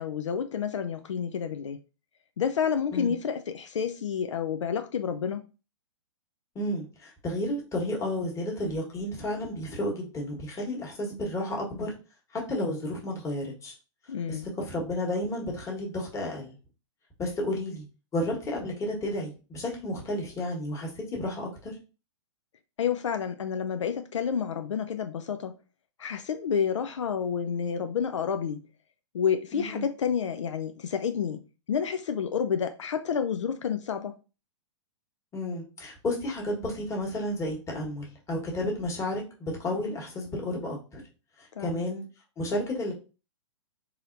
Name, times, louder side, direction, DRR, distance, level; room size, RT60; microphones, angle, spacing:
voice 1, 0.0-1.8 2.4-5.4 14.1-14.5 22.8-25.5 26.0-28.6 29.1-34.1 41.6-41.9, left 7 dB, 75° left, 0.4 m, -29 dB
voice 2, 6.5-11.9 12.3-13.7 14.3-16.5 17.2-17.8 18.1-21.8 29.5-29.9 35.3-41.0 41.4-42.0 42.4-42.9, left 1 dB, 20° left, 1.3 m, -32 dB
4.0 x 2.8 x 2.5 m
figure-of-eight pair, 110°, 16 cm